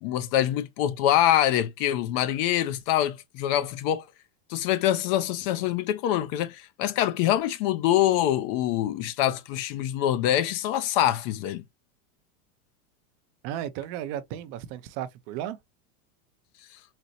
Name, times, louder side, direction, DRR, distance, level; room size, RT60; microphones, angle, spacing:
voice 1, 0.0-4.1 4.5-11.6, left 12 dB, 45° left, 0.4 m, -25 dB
voice 2, 13.4-15.6, right 11 dB, 45° right, 0.5 m, -34 dB
4.1 x 2.0 x 2.6 m
supercardioid pair, 125°, 43 cm